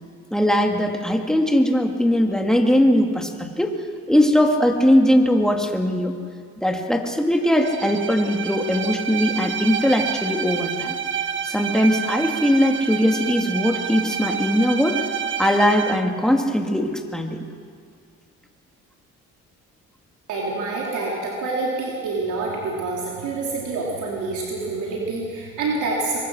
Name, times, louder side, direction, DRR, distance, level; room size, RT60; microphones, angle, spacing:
voice 1, 0.3-3.7 4.1-6.1 6.6-11.0 11.4-15.0 15.4-17.4, equal, ahead, 2 dB, 2.4 m, -20 dB
Bowed string instrument, 7.4-16.1, right 7 dB, 40° right, 1.3 m, -29 dB
voice 2, 20.3-26.2, right 3 dB, 85° right, -3 dB, 3.4 m, -27 dB
24.0 x 21.0 x 6.4 m, 2.2 s
cardioid pair, 90°, 30 cm